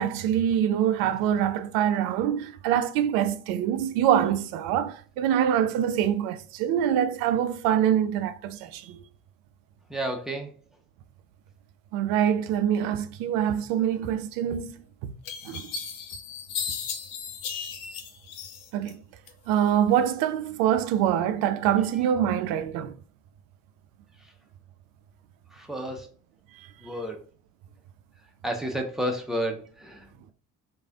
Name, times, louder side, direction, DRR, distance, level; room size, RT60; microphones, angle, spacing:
voice 1, 0.0-9.0 11.9-15.1 15.4-15.7 18.7-19.0 19.5-22.9, right 10 dB, 60° right, 0.5 m, -25 dB
voice 2, 9.9-10.5 25.5-26.1 26.8-27.2 28.4-30.3, equal, ahead, 0.9 m, -31 dB
sound 1, 14.5-14.6 15.2-18.9 19.3-20.0, left 7 dB, 55° left, 0.7 m, -35 dB
3.2 x 2.6 x 3.5 m
figure-of-eight pair, 45°, 40 cm